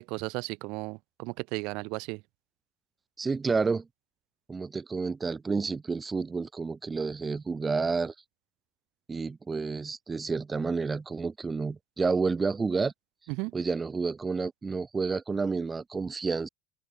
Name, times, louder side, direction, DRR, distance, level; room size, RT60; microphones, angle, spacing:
voice 1, 0.0-2.2 13.4-13.5, right 26 dB, 60° right, 5.4 m, -35 dB
voice 2, 3.2-3.9 4.5-8.1 9.1-12.9 13.5-16.5, right 4 dB, 15° right, 2.3 m, -30 dB
open air
supercardioid pair, 140°, 0 cm